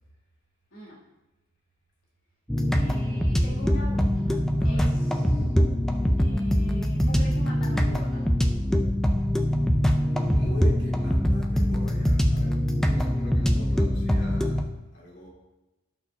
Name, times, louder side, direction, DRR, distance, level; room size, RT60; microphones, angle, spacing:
sound 1, 2.5-14.6, equal, ahead, 0.4 m, -23 dB
voice 1, 2.7-5.5 6.2-8.3, equal, 80° left, -5 dB, 2.6 m, -42 dB
voice 2, 4.6-4.9 10.3-15.3, left 2 dB, 55° left, -4 dB, 2.3 m, -43 dB
11.5 x 6.4 x 2.7 m, 1.0 s
head